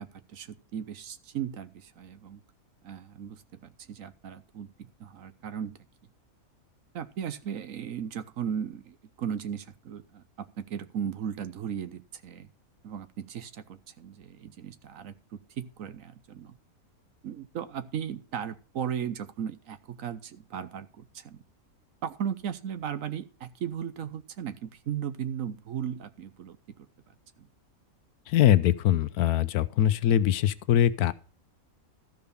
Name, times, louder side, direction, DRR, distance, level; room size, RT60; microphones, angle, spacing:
voice 1, 0.0-2.4 2.8-5.8 6.9-12.5 12.8-16.6 17.2-21.4 22.0-26.6 27.4-27.5, right 8 dB, 65° right, 1.1 m, -36 dB
voice 2, 28.3-31.1, left 11 dB, 85° left, 1.2 m, -22 dB
13.5 x 5.0 x 6.8 m
omnidirectional pair, 1.6 m